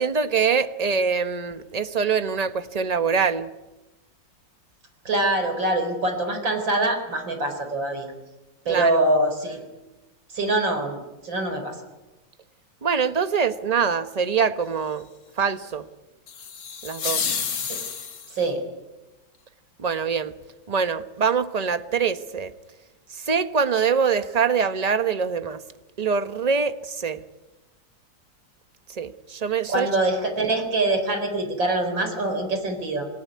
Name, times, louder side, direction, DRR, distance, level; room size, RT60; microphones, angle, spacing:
voice 1, 0.0-3.5 8.7-8.9 12.8-15.1 15.4-15.9 16.8-17.2 19.8-20.3 20.7-22.5 23.1-25.6 26.0-27.2 28.9-29.9, right 6 dB, 30° right, 0.8 m, -24 dB
voice 2, 5.0-8.1 8.6-9.6 10.3-11.8 17.7-17.8 18.3-18.6 29.7-33.1, right 2 dB, 70° right, 5.1 m, -24 dB
sound 1, 16.3-18.5, left 6 dB, 65° left, 2.3 m, -29 dB
27.5 x 19.5 x 9.5 m
omnidirectional pair, 2.1 m